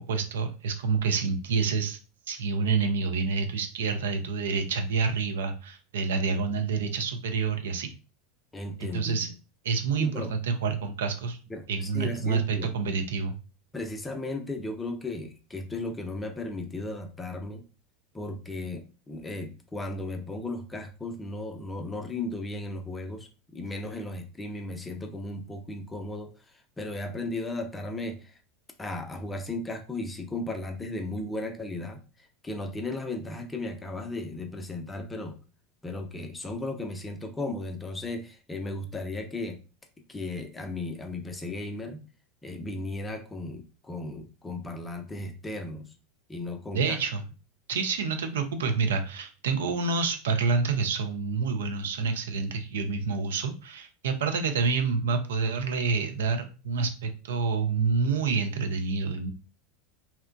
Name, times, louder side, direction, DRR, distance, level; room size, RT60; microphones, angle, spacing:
voice 1, 0.0-2.0 2.3-7.9 8.8-9.3 9.6-11.4 11.7-13.3 46.7-47.2 47.7-59.3, right 5 dB, 65° right, 6 dB, 0.4 m, -28 dB
voice 2, 8.5-9.3 10.0-10.4 11.5-12.8 13.7-17.6 18.1-28.4 28.8-35.4 35.8-39.6 40.1-42.0 42.4-45.9 46.3-47.0, left 2 dB, 15° left, 5 dB, 0.5 m, -35 dB
2.8 x 2.1 x 2.4 m, 0.33 s
figure-of-eight pair, 80°, 0 cm